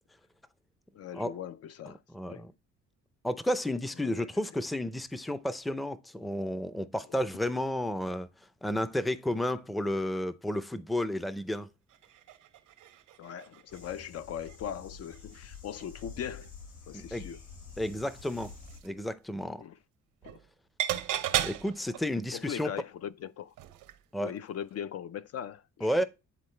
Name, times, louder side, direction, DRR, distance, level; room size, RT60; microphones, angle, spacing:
voice 1, 0.9-2.0 2.3-2.5 4.0-4.3 7.1-7.2 13.2-16.5 16.9-17.4 19.6-19.8 20.2-20.4 22.3-23.5 24.2-26.0, left 9 dB, 55° left, 0.5 m, -40 dB
voice 2, 2.1-2.5 3.2-8.3 8.6-11.7 16.9-17.3 17.8-18.5 18.8-19.6 21.4-22.7 24.1-24.3 25.8-26.0, left 1 dB, ahead, 0.5 m, -32 dB
sound 1, 11.9-14.0 14.4-14.6 15.0-16.0 16.4-16.5 17.6-19.0 20.2-20.5 20.8-22.2 23.6-24.0 24.4-24.5, right 12 dB, 85° right, 0.7 m, -36 dB
sound 2, 13.7-18.8, left 5 dB, 75° left, 4.1 m, -48 dB
9.5 x 3.8 x 3.2 m
cardioid pair, 90°, 30 cm